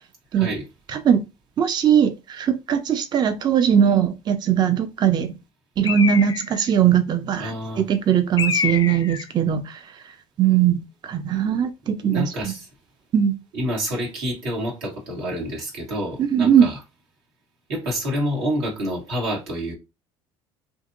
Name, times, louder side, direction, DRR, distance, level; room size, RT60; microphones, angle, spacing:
voice 1, 0.3-0.6 7.4-7.8 12.0-12.7 13.5-16.8 17.7-19.7, equal, 85° right, 1.3 m, -28 dB
voice 2, 0.9-1.2 1.6-5.3 5.8-10.0 10.4-12.5 13.1-13.3 16.2-16.7, right 9 dB, 35° right, 0.4 m, -20 dB
Bird, 5.8-6.7 8.4-9.3, left 7 dB, 35° left, 0.4 m, -26 dB
2.8 x 2.5 x 2.5 m
supercardioid pair, 75°, 13 cm